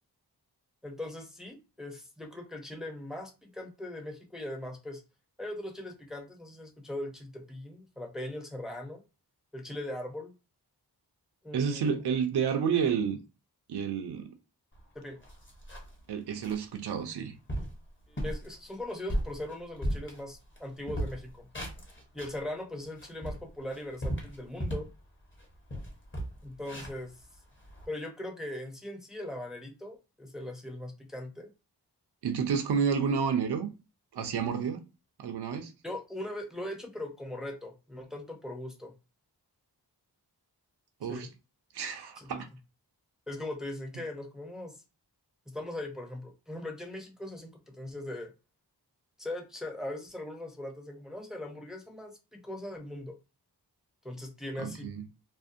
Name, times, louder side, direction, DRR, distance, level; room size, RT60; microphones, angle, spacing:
voice 1, 0.8-5.0 5.4-9.0 9.5-10.3 11.4-12.0 14.9-15.2 18.1-21.5 22.1-24.9 26.4-27.3 27.9-31.5 35.8-38.9 41.1-41.3 42.2-42.4 43.3-44.8 45.5-48.3 49.2-53.2 54.0-54.9, left 1 dB, ahead, 0.5 m, -40 dB
voice 2, 11.5-13.2 13.7-14.3 16.1-17.3 32.2-33.7 34.1-34.8 35.2-35.7 41.0-41.3 41.7-42.5 54.6-55.0, right 6 dB, 70° right, 0.5 m, -30 dB
sound 1, 14.8-14.9 15.2-16.0 16.4-16.6 17.1-17.2 17.5-17.8 18.2-18.5 18.9-20.6 20.9-22.4 22.8-25.0 25.3-25.4 25.7-27.9, equal, 30° left, 0.8 m, -36 dB
2.5 x 2.1 x 2.5 m
wide cardioid pair, 65°, 41 cm